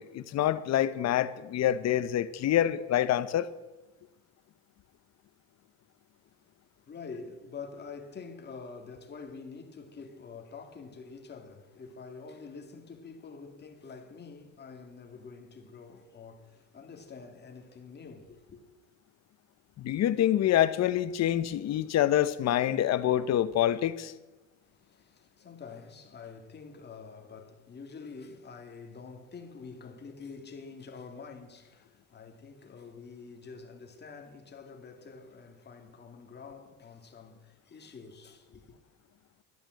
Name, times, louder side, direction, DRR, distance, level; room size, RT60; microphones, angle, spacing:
voice 1, 0.0-3.5 19.8-24.1, left 11 dB, 50° left, 0.8 m, -26 dB
voice 2, 6.8-18.6 24.6-38.8, left 5 dB, 30° left, 2.2 m, -47 dB
12.0 x 10.5 x 7.7 m
cardioid pair, 120°, 34 cm